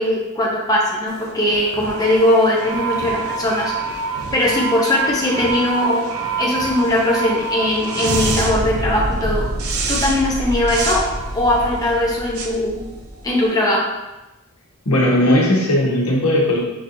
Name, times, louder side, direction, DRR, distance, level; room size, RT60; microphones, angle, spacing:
voice 1, 0.0-3.7 4.3-6.0 6.4-9.5 9.9-11.0 11.3-12.8 13.2-13.9, left 1 dB, 15° left, -4 dB, 0.7 m, -19 dB
sound 1, 1.1-13.5, right 3 dB, 70° right, 0.6 m, -26 dB
voice 2, 14.8-16.6, left 1 dB, 75° left, -4 dB, 1.2 m, -17 dB
5.9 x 2.9 x 2.6 m, 1.0 s
head